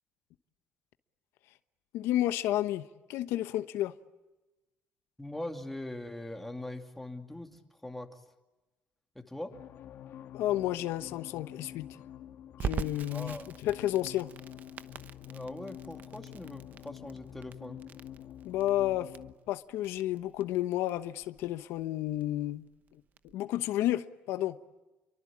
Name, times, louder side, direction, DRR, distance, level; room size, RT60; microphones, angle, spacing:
voice 1, 1.9-3.9 10.3-11.9 12.6-13.4 13.6-14.3 18.4-19.2 19.5-23.0 23.3-24.6, left 14 dB, 90° left, 1.1 m, -31 dB
voice 2, 5.2-8.2 9.1-9.5 13.1-13.5 15.3-17.8, left 1 dB, 5° left, 2.5 m, -41 dB
sound 1, 9.5-19.3, left 11 dB, 65° left, 2.1 m, -48 dB
Crackle, 12.6-23.3, right 7 dB, 45° right, 1.0 m, -43 dB
29.0 x 23.5 x 8.6 m
cardioid pair, 135°, 4 cm